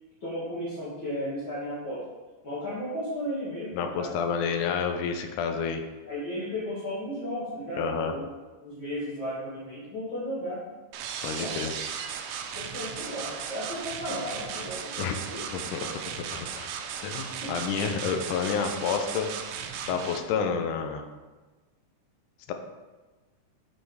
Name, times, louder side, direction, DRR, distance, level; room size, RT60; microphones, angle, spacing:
voice 1, 0.2-2.0 2.4-4.1 6.1-8.2 8.6-10.6 11.3-11.6 12.6-15.5 15.8-16.0 17.4-17.5, equal, 40° left, -10 dB, 2.3 m, -34 dB
voice 2, 3.7-5.8 7.8-8.1 11.2-11.7 15.0-15.2 15.5-16.7 17.0-19.3 19.9-21.0 22.5-22.6, left 6 dB, 80° left, 5 dB, 2.2 m, -29 dB
sound 1, 10.9-20.2, right 7 dB, 80° right, 1.6 m, -36 dB
6.6 x 5.7 x 4.8 m, 1.2 s
omnidirectional pair, 3.7 m